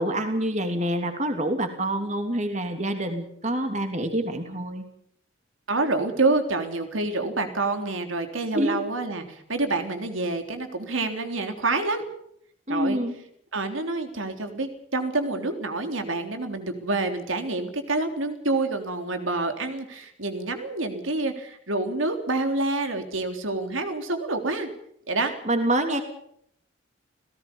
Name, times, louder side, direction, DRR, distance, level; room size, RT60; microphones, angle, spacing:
voice 1, 0.0-4.8 8.5-8.8 12.7-13.1 25.4-26.0, right 1 dB, 35° right, 6 dB, 3.0 m, -26 dB
voice 2, 5.7-12.0 12.7-13.0 13.5-24.7 25.1-25.3, right 2 dB, 85° right, 6 dB, 3.6 m, -27 dB
29.5 x 17.5 x 5.5 m, 0.69 s
head